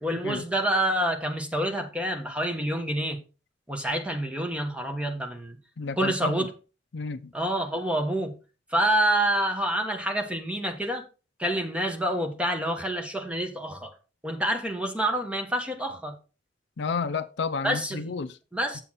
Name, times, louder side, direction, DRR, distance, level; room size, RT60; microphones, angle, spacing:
voice 1, 0.0-3.2 3.7-5.6 6.0-6.5 7.3-8.3 8.7-11.0 11.4-13.9 14.2-16.1 17.6-18.0 18.5-18.8, right 1 dB, 5° right, 1.3 m, -27 dB
voice 2, 5.8-6.5 6.9-7.3 16.8-18.4 18.7-18.8, left 5 dB, 65° left, 0.5 m, -31 dB
7.6 x 6.9 x 4.2 m
head